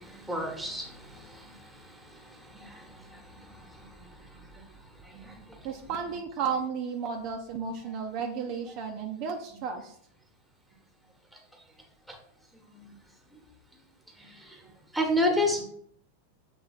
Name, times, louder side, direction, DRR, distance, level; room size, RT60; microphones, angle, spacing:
voice 1, 0.3-0.9 14.9-15.6, left 1 dB, ahead, 2 dB, 1.3 m, -26 dB
voice 2, 5.6-9.9, right 6 dB, 40° right, 3 dB, 0.6 m, -33 dB
7.5 x 3.4 x 4.1 m, 0.67 s
figure-of-eight pair, 90°, 0 cm